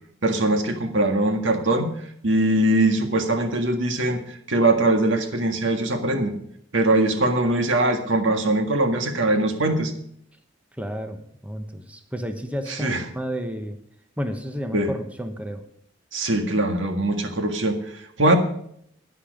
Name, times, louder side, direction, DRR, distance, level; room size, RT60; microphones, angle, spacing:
voice 1, 0.2-4.2 4.5-6.3 6.7-9.9 12.7-13.0 14.7-14.9 16.1-17.8 18.2-18.4, right 1 dB, 85° right, 5 dB, 1.8 m, -21 dB
voice 2, 10.8-13.8 14.2-15.6, equal, 5° right, 6 dB, 1.0 m, -31 dB
10.5 x 10.5 x 5.2 m, 0.67 s
head